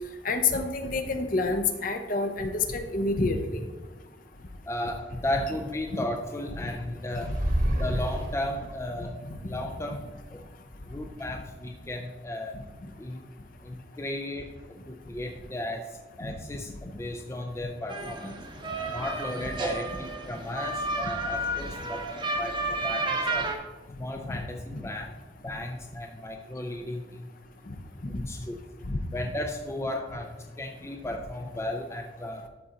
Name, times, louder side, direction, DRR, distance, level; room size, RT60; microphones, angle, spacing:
voice 1, 0.2-3.4 6.6-6.7 9.3-9.4 24.3-24.4 24.7-24.8 28.9-29.0, left 3 dB, 45° left, 6 dB, 0.7 m, -28 dB
voice 2, 4.7-7.4 7.7-10.4 10.9-12.5 13.0-13.2 13.6-18.4 18.9-23.5 24.0-25.1 25.4-27.3 28.1-28.6 29.1-32.4, left 1 dB, 15° left, 3 dB, 0.4 m, -35 dB
sound 1, 7.2-8.8, equal, 45° right, 1.3 m, -28 dB
sound 2, 17.9-23.6, right 2 dB, 25° right, 0.8 m, -32 dB
12.5 x 4.2 x 3.8 m, 1.3 s
head